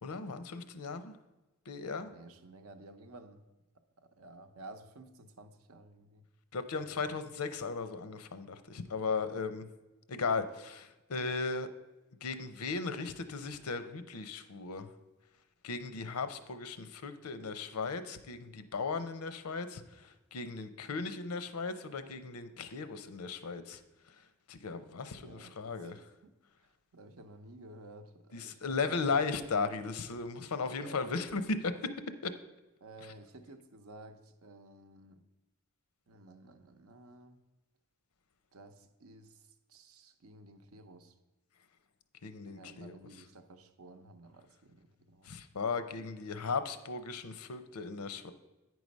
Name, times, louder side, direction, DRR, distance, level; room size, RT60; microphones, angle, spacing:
voice 1, 0.0-1.1 1.7-2.1 6.5-9.7 10.1-11.7 12.2-14.9 15.6-23.8 24.5-26.0 28.3-31.8 32.2-32.3 42.2-42.9 45.2-48.3, left 4 dB, 90° left, 11 dB, 0.6 m, -36 dB
voice 2, 2.0-3.4 4.0-6.2 6.7-6.9 25.2-26.3 26.9-29.3 30.5-31.2 32.8-35.2 36.1-37.4 38.5-41.1 42.5-45.3, right 2 dB, 75° right, 8 dB, 0.7 m, -53 dB
9.4 x 4.8 x 5.3 m, 1.0 s
head